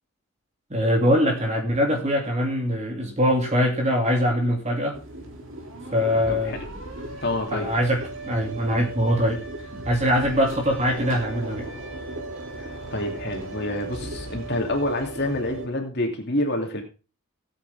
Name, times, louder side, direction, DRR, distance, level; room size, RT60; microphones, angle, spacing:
voice 1, 0.7-5.0 5.9-6.6 7.5-9.4 9.8-11.7, equal, 30° right, 3 dB, 2.6 m, -22 dB
sound 1, 4.9-15.7, right 2 dB, 60° right, 2.7 m, -37 dB
voice 2, 6.3-6.6 7.2-7.7 12.6-16.8, left 1 dB, 50° left, 3 dB, 2.7 m, -27 dB
17.5 x 8.5 x 3.5 m, 0.32 s
head